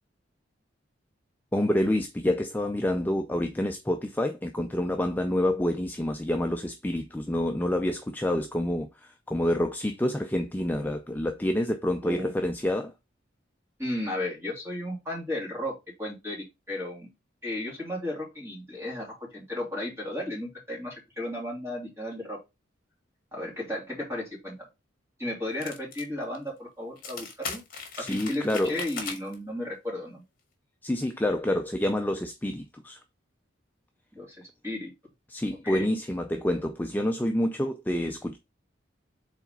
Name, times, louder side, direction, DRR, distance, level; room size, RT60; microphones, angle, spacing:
voice 1, 1.5-12.9 27.9-28.8 30.8-33.0 35.3-38.4, left 1 dB, 10° left, 0.4 m, -28 dB
voice 2, 13.8-17.1 17.4-22.4 23.3-24.6 25.2-27.6 28.0-30.2 34.1-34.9 35.6-35.9, left 1 dB, 15° right, 3.1 m, -34 dB
sound 1, 25.6-26.0 26.3-26.4 27.0-29.4, left 5 dB, 45° left, 1.8 m, -38 dB
4.9 x 4.1 x 5.3 m
head